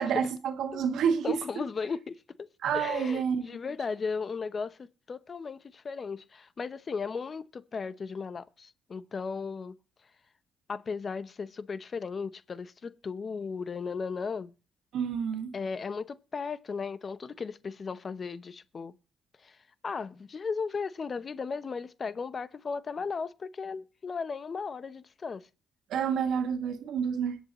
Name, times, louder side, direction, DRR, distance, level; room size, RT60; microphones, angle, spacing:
voice 1, 0.0-1.6 2.6-3.6 14.9-15.5 25.9-27.4, right 7 dB, 75° right, 1.8 m, -29 dB
voice 2, 1.2-2.5 2.7-9.7 10.7-14.5 15.5-18.9 19.4-19.6 19.8-25.5, left 5 dB, 40° left, 0.8 m, -36 dB
21.5 x 8.3 x 3.0 m
cardioid pair, 90°, 0 cm